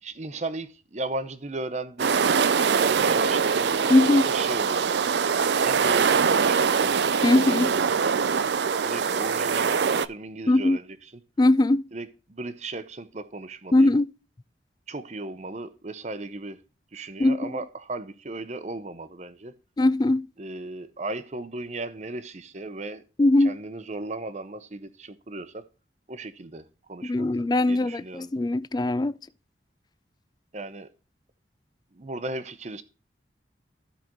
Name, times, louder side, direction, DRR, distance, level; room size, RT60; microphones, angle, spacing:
voice 1, 0.0-5.1 5.6-6.9 7.3-7.9 8.8-11.0 11.9-13.9 14.9-16.6 16.9-19.5 20.4-23.0 23.4-25.6 26.1-27.3 27.7-28.3 30.5-30.9 31.9-32.8, right 2 dB, 40° right, 0.8 m, -36 dB
sound 1, 2.0-10.1, right 6 dB, 70° right, 0.5 m, -23 dB
voice 2, 3.9-4.3 7.2-7.7 10.5-10.8 11.4-11.8 13.7-14.1 17.2-17.5 19.8-20.3 23.2-23.6 27.0-29.1, left 2 dB, 20° left, 0.3 m, -20 dB
14.5 x 5.1 x 3.0 m
head